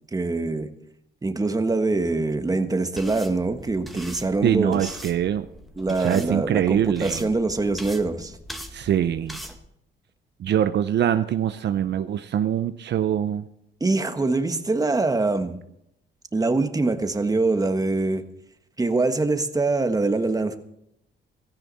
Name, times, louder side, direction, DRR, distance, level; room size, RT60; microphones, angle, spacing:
voice 1, 0.1-0.7 1.2-5.0 5.8-8.4 13.8-15.6 16.3-18.2 18.8-20.6, right 3 dB, 20° right, 8 dB, 1.4 m, -24 dB
sound 1, 3.0-9.6, equal, ahead, 1.8 m, -42 dB
voice 2, 4.4-5.5 6.0-7.3 8.7-9.4 10.4-13.5, right 10 dB, 60° right, 11 dB, 0.7 m, -23 dB
16.5 x 13.5 x 4.2 m, 0.77 s
cardioid pair, 90°, 20 cm